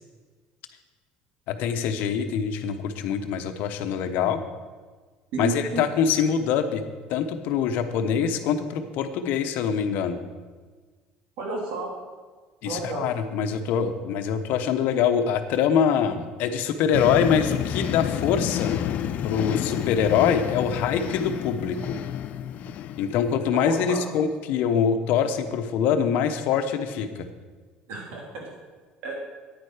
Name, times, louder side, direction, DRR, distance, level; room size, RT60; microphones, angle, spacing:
voice 1, 1.5-4.4 5.4-6.8 7.1-10.2 12.6-18.7 19.2-22.0 23.0-27.3, left 7 dB, 70° left, 8 dB, 0.9 m, -24 dB
voice 2, 5.3-5.8 11.4-11.9 12.6-13.1 23.5-24.0 27.9-28.5 29.0-29.1, right 3 dB, 75° right, -1 dB, 3.3 m, -31 dB
sound 1, 16.9-23.4, left 10 dB, 55° left, 0.4 m, -30 dB
9.7 x 9.1 x 4.9 m, 1.4 s
cardioid pair, 120°, 3 cm